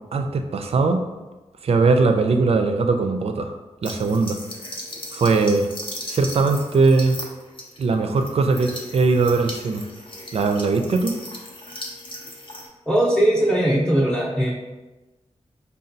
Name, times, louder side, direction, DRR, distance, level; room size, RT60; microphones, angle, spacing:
voice 1, 0.1-1.0 1.6-3.5 3.8-4.4 5.1-5.7 6.1-7.2 7.8-9.8 10.3-11.1, right 3 dB, 60° right, 6 dB, 0.4 m, -20 dB
sound 1, 3.8-12.7, left 1 dB, 45° left, 0.6 m, -37 dB
voice 2, 12.9-14.5, right 1 dB, 5° left, -7 dB, 0.7 m, -19 dB
5.0 x 2.2 x 2.6 m, 1.1 s
wide cardioid pair, 80°, 12 cm